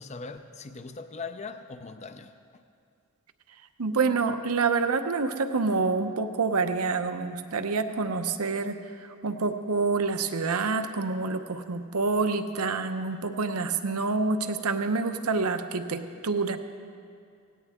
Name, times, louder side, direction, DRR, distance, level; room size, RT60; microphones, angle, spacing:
voice 1, 0.0-2.3, left 4 dB, 30° left, 9 dB, 0.5 m, -40 dB
voice 2, 3.8-8.8 9.2-16.6, right 4 dB, 85° right, 8 dB, 0.8 m, -27 dB
18.0 x 17.0 x 3.6 m, 2.3 s
head